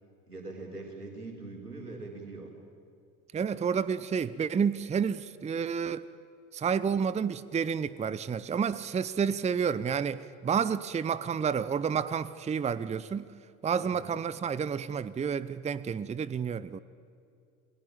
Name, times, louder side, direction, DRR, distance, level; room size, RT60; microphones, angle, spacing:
voice 1, 0.3-2.5 13.8-14.1, right 3 dB, 85° right, 1 dB, 4.2 m, -42 dB
voice 2, 3.3-6.0 6.5-13.3 13.6-16.8, right 6 dB, 15° right, 17 dB, 0.8 m, -30 dB
29.5 x 21.0 x 8.9 m, 2.5 s
figure-of-eight pair, 65°, 45 cm